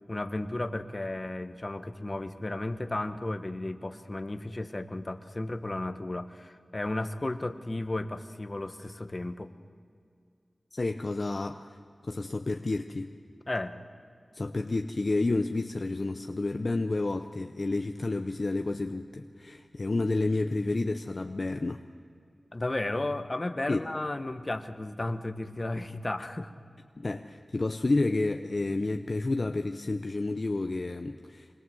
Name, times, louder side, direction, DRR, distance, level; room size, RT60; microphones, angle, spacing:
voice 1, 0.1-9.5 13.5-13.8 22.5-26.5, left 2 dB, 35° left, 9 dB, 1.3 m, -34 dB
voice 2, 10.7-11.8 12.0-13.1 14.3-21.8 23.7-23.8 27.0-31.6, left 2 dB, 55° left, 6 dB, 0.8 m, -30 dB
25.0 x 21.5 x 7.8 m, 2.3 s
wide cardioid pair, 55°, 0 cm